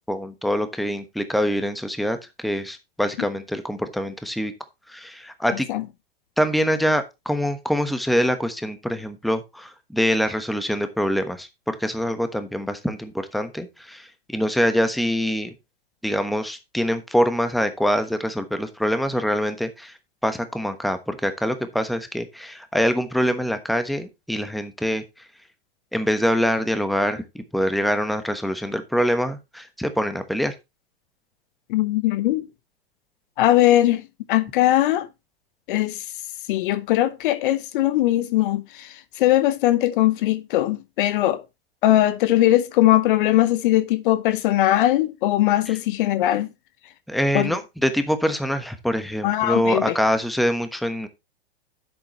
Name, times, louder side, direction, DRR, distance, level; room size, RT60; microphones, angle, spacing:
voice 1, 0.1-2.2 2.4-4.5 4.9-5.7 6.4-15.5 16.0-20.0 20.2-25.2 25.9-30.5 45.7-45.8 47.1-51.1, equal, ahead, 1.1 m, -24 dB
voice 2, 5.5-5.8 31.7-32.5 33.4-35.1 35.7-36.1 36.5-41.4 41.8-46.5 47.3-47.5 49.2-50.0, left 14 dB, 55° left, 0.9 m, -20 dB
10.5 x 7.8 x 3.1 m
hypercardioid pair, 105°, 30 cm